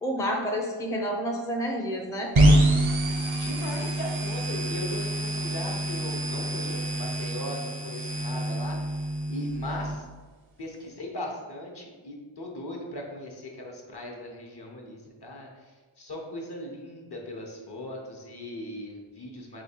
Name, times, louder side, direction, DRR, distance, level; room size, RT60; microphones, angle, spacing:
voice 1, 0.0-2.3, equal, 5° left, 0 dB, 0.5 m, -29 dB
sound 1, 2.3-9.9, right 1 dB, 70° right, 0.8 m, -26 dB
voice 2, 3.0-8.8 9.3-10.0 10.6-15.5 16.0-19.6, left 1 dB, 50° left, 0 dB, 1.0 m, -38 dB
3.3 x 3.0 x 4.4 m, 1.3 s
cardioid pair, 40°, 49 cm